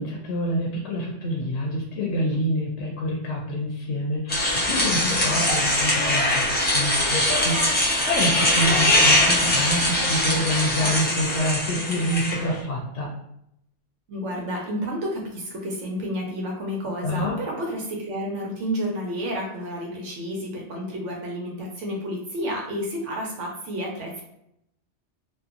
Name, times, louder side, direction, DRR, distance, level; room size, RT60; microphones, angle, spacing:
voice 1, 0.0-13.1 17.0-17.4, equal, 75° left, -1 dB, 0.8 m, -27 dB
sound 1, 4.3-12.6, left 1 dB, 15° left, 0.3 m, -22 dB
voice 2, 14.1-24.2, equal, 75° right, -1 dB, 0.9 m, -30 dB
2.7 x 2.2 x 2.4 m, 0.77 s
omnidirectional pair, 1.2 m